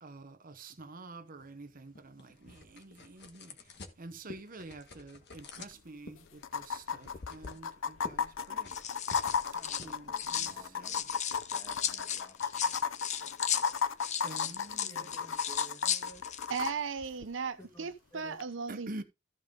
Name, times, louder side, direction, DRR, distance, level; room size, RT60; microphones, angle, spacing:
voice 1, 0.0-8.8 9.8-11.1 14.2-15.1 18.7-19.0, right 2 dB, 45° right, 1.0 m, -48 dB
sound 1, 1.4-11.6, left 3 dB, 55° left, 1.6 m, -53 dB
sound 2, 5.4-5.5 5.7-5.8 6.4-16.7 18.4-18.5, left 6 dB, 80° left, 0.6 m, -34 dB
sound 3, 7.1-7.6 8.4-10.5 10.8-16.7 17.0-17.3, left 9 dB, 35° left, 0.6 m, -36 dB
voice 2, 9.3-11.0 11.3-12.8 13.0-13.7 14.4-14.5 14.8-16.3 17.6-18.4, right 1 dB, 15° left, 1.8 m, -55 dB
voice 3, 16.5-19.0, right 5 dB, 70° right, 0.7 m, -36 dB
14.0 x 5.2 x 3.8 m
head